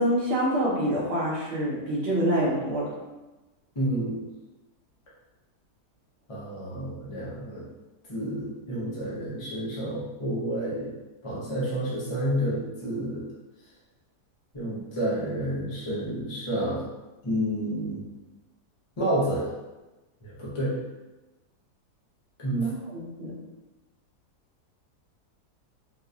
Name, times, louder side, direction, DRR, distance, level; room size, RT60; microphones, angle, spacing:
voice 1, 0.0-2.9 22.5-23.3, equal, 45° right, -5 dB, 0.9 m, -26 dB
voice 2, 3.8-4.2 6.3-7.6 8.1-10.9 11.2-13.2 14.5-16.8 17.2-18.1 19.0-19.5 20.2-20.8 22.4-22.7, right 1 dB, 35° left, -8 dB, 0.5 m, -29 dB
3.8 x 2.7 x 2.4 m, 1.1 s
omnidirectional pair, 1.8 m